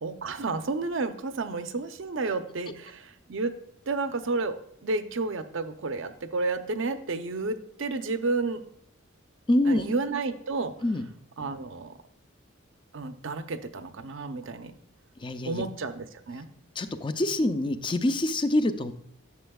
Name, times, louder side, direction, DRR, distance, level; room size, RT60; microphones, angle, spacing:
voice 1, 0.0-3.5 3.9-8.6 9.7-10.7 11.4-11.9 12.9-14.7 15.4-16.5, right 3 dB, 65° right, 9 dB, 0.6 m, -31 dB
voice 2, 9.5-9.8 10.8-11.1 15.2-15.6 16.8-18.9, left 1 dB, 25° left, 10 dB, 0.4 m, -25 dB
11.0 x 7.1 x 2.3 m, 0.71 s
head